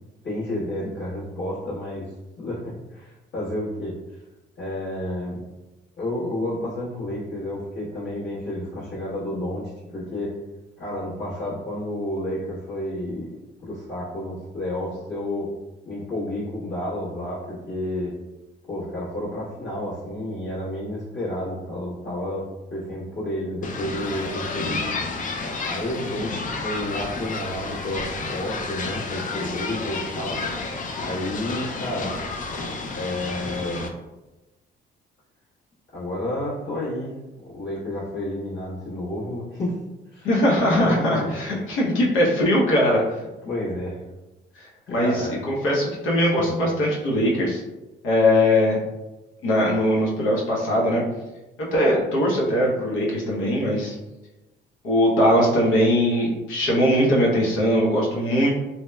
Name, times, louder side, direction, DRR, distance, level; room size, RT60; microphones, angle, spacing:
voice 1, 0.2-3.9 4.6-5.4 6.0-10.3 10.8-13.3 13.6-15.5 15.8-18.1 18.7-25.1 25.6-30.4 31.0-32.1 32.9-33.9 35.9-37.1 37.4-39.8 40.1-40.3 40.8-41.3 43.4-44.0 44.9-45.4 46.3-46.5, left 1 dB, 65° left, -10 dB, 1.3 m, -30 dB
sound 1, 23.6-33.9, left 3 dB, 40° left, 0.4 m, -31 dB
voice 2, 40.2-43.0 44.6-47.6 48.0-48.8 49.4-51.0 51.6-53.9 54.8-58.5, equal, 85° left, -4 dB, 0.8 m, -21 dB
2.7 x 2.1 x 2.2 m, 1.1 s
cardioid pair, 90°, 20 cm